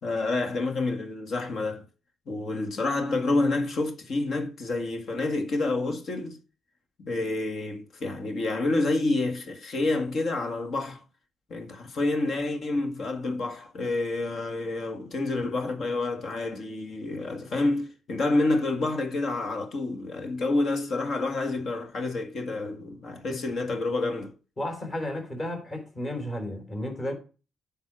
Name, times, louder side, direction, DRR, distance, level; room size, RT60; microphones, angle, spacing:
voice 1, 0.0-1.8 2.3-6.4 7.1-11.0 11.5-24.3, left 2 dB, 60° left, 1.9 m, -28 dB
voice 2, 24.6-27.1, left 1 dB, 30° left, 3.8 m, -33 dB
9.7 x 5.6 x 6.2 m
cardioid pair, 90°, 0 cm